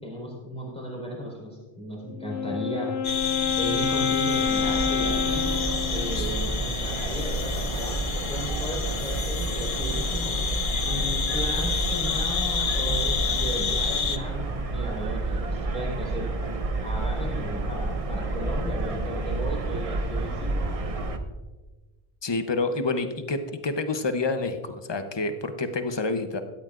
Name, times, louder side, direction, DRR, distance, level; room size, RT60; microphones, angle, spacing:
voice 1, 0.0-2.9 3.6-5.4 5.9-10.3 10.8-16.2 16.8-20.5, equal, 5° left, -3 dB, 4.5 m, -35 dB
Wind instrument woodwind instrument, 2.0-6.4, left 6 dB, 80° left, 0.8 m, -28 dB
sound 1, 3.0-14.2, left 6 dB, 60° left, 0.9 m, -29 dB
sound 2, 4.4-21.2, right 2 dB, 35° right, 0.8 m, -30 dB
voice 2, 22.2-23.4 23.6-26.4, left 3 dB, 30° left, 7 dB, 0.8 m, -28 dB
17.0 x 13.5 x 2.5 m, 1.2 s
omnidirectional pair, 1.1 m